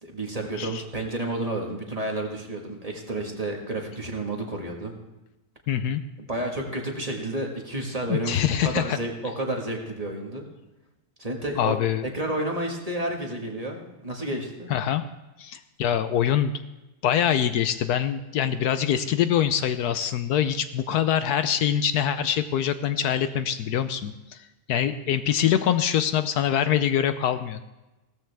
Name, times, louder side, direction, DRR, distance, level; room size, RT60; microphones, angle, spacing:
voice 1, 0.0-4.9 6.3-10.4 11.2-11.8 12.0-14.7, right 1 dB, 25° right, 0 dB, 1.7 m, -31 dB
voice 2, 5.7-6.0 8.1-9.0 11.6-12.0 14.7-15.0 15.4-16.5 17.0-27.7, left 9 dB, 75° left, 11 dB, 1.1 m, -24 dB
16.5 x 13.5 x 3.4 m, 1.0 s
omnidirectional pair, 1.8 m